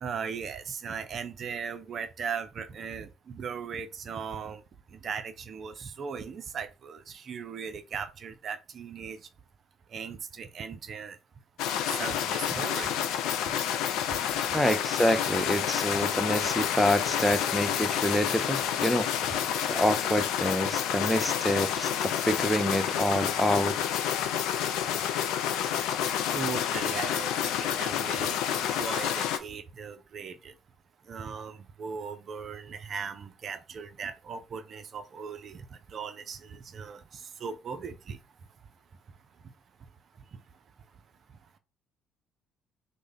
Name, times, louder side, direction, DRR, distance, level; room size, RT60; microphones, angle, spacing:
voice 1, 0.0-4.6 5.0-9.2 9.9-11.2 11.9-12.9 15.9-16.1 26.3-30.5 31.1-35.6 35.9-38.2, right 6 dB, 50° right, 0.4 m, -38 dB
sound 1, 11.6-29.4, left 9 dB, 70° left, 0.4 m, -29 dB
voice 2, 14.5-19.1 19.7-23.8, equal, 5° left, 0.5 m, -27 dB
3.2 x 2.1 x 3.6 m
hypercardioid pair, 50°, 0 cm